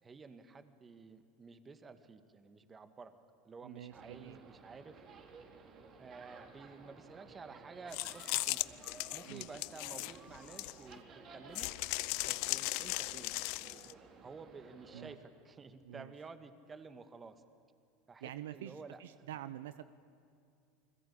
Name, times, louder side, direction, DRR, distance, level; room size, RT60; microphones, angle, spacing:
voice 1, 0.0-3.1 3.4-5.0 6.0-8.7 9.1-11.1 11.3-11.7 12.2-13.3 13.6-17.4 18.1-19.0, right 4 dB, 25° right, 10 dB, 1.9 m, -52 dB
voice 2, 3.6-4.4 9.3-9.5 14.9-15.2 15.9-16.1 18.2-19.8, right 12 dB, 80° right, 13 dB, 0.8 m, -46 dB
sound 1, 3.9-15.1, right 4 dB, 40° right, 4.0 m, -56 dB
sound 2, 7.9-11.0 11.5-13.9, left 23 dB, 65° left, 0.6 m, -37 dB
29.0 x 21.5 x 8.7 m, 2.4 s
hypercardioid pair, 90°, 0 cm